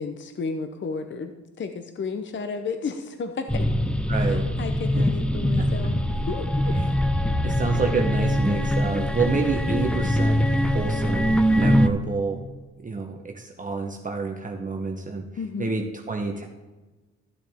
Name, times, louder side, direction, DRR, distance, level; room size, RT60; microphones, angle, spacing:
voice 1, 0.0-3.7 4.1-6.0 6.3-6.8 11.6-11.7 15.4-15.7, left 5 dB, 40° left, 7 dB, 0.8 m, -33 dB
sound 1, 3.5-11.9, equal, 5° left, 0.6 m, -23 dB
voice 2, 4.1-4.5 4.9-5.1 5.6-5.7 6.7-6.9 7.4-12.4 12.8-15.3 15.6-16.5, right 4 dB, 25° right, 2 dB, 0.9 m, -28 dB
14.0 x 7.4 x 3.5 m, 1.2 s
cardioid pair, 90°, 30 cm